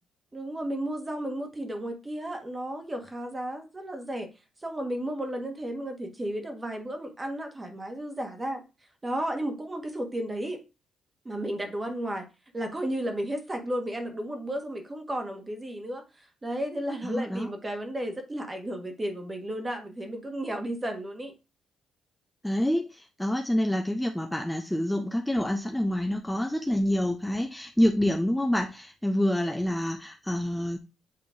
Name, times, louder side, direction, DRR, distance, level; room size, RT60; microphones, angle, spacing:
voice 1, 0.3-4.3 4.6-8.6 9.0-10.6 11.2-12.2 12.5-16.0 16.4-21.3, right 1 dB, 20° right, 4 dB, 1.5 m, -33 dB
voice 2, 17.0-17.5 22.4-30.8, left 1 dB, 5° left, 3 dB, 0.6 m, -27 dB
8.5 x 2.9 x 3.9 m, 0.28 s
cardioid pair, 90°, 0 cm